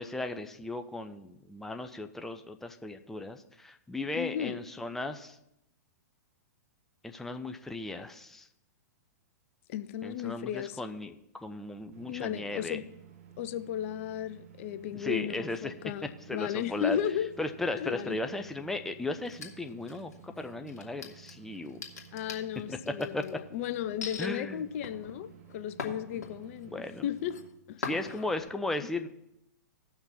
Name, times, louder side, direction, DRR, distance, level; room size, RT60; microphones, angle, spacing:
voice 1, 0.0-5.4 7.0-8.5 10.0-12.8 15.0-15.7 16.3-17.0 17.4-21.8 22.7-22.8 23.1-23.2 24.2-24.6 26.7-27.1 27.8-29.1, left 2 dB, 5° left, 0.6 m, -36 dB
voice 2, 4.1-4.6 9.7-10.8 12.1-12.8 13.4-17.3 17.8-18.2 22.1-27.4 27.7-27.9, left 10 dB, 50° left, 0.7 m, -35 dB
sound 1, 11.9-27.5, right 9 dB, 50° right, 0.9 m, -54 dB
sound 2, 19.2-20.2 20.7-23.3 24.0-24.3 24.8-26.6 27.0-27.4 27.8-28.4, left 5 dB, 65° left, 2.0 m, -41 dB
15.5 x 5.9 x 4.2 m
figure-of-eight pair, 110°, 9 cm